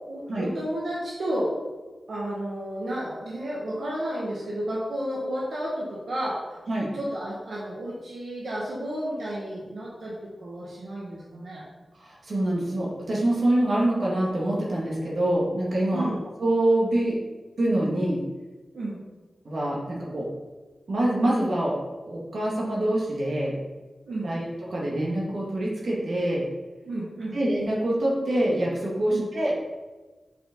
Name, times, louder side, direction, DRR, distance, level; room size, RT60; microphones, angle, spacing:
voice 1, 0.1-1.5 2.1-6.6 6.9-11.6 15.9-16.2 18.7-19.0 24.1-24.3 26.8-27.4 29.1-29.2, right 1 dB, 85° right, -5 dB, 1.4 m, -32 dB
voice 2, 12.0-16.1 16.4-17.2 17.6-18.2 19.4-20.3 20.9-21.8 22.1-23.6 24.2-26.4 27.3-29.5, right 1 dB, 65° right, -5 dB, 2.0 m, -25 dB
6.3 x 5.6 x 3.9 m, 1.2 s
wide cardioid pair, 135°, 0 cm